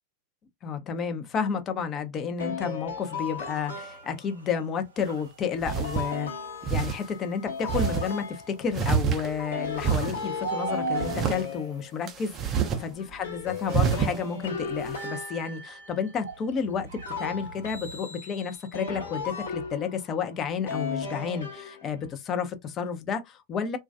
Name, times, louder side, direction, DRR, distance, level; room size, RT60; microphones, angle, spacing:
voice 1, 0.6-6.3 6.7-16.9 17.2-23.8, left 6 dB, 30° left, 0.5 m, -31 dB
sound 1, 2.4-4.3 5.7-8.8 9.2-12.3 12.7-16.3 17.0-20.1 20.7-22.1, left 5 dB, 65° left, 0.8 m, -36 dB
sound 2, 3.1-12.4 12.9-15.2 15.5-18.0, right 7 dB, 65° right, 0.7 m, -42 dB
sound 3, 5.0-5.1 5.6-6.1 6.6-7.0 7.7-8.1 8.7-9.5 9.8-10.2 11.0-11.4 12.1-12.8 13.1-13.2 13.7-14.2, right 7 dB, 30° right, 0.5 m, -27 dB
2.2 x 2.2 x 2.5 m
figure-of-eight pair, 90°, 0 cm